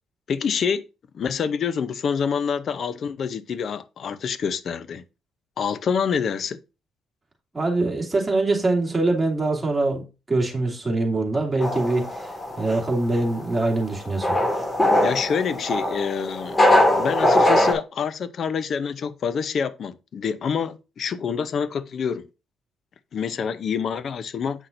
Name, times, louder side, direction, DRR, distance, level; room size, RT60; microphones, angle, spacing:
voice 1, 0.3-0.8 1.1-5.0 5.6-6.6 15.0-16.6 17.0-22.3 23.1-24.7, left 6 dB, 55° left, 0.6 m, -27 dB
voice 2, 7.5-10.0 10.3-14.4, right 2 dB, 15° right, 2.5 m, -23 dB
sound 1, 11.6-17.7, left 1 dB, 20° left, 1.9 m, -21 dB
8.1 x 5.8 x 2.6 m
cardioid pair, 90°, 0 cm